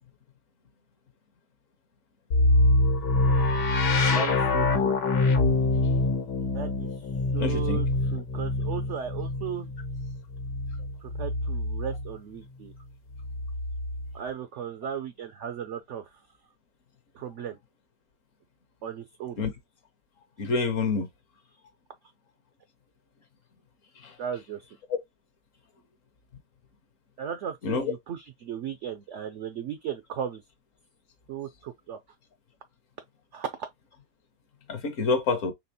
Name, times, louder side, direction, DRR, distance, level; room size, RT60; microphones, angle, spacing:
sound 1, 2.3-12.1 13.1-14.2, left 2 dB, 85° left, 1.5 m, -25 dB
voice 1, 4.1-5.0 6.5-6.9 7.3-9.7 11.0-12.7 14.1-16.0 17.1-17.6 18.8-19.4 24.2-24.7 27.2-30.4 31.3-32.0 33.3-33.7, right 8 dB, 80° right, 0.6 m, -36 dB
voice 2, 7.4-7.8 19.4-19.5 20.4-21.1 24.0-24.1 27.6-27.9 34.7-35.5, left 4 dB, 60° left, 1.0 m, -27 dB
4.3 x 3.3 x 2.7 m
omnidirectional pair, 1.8 m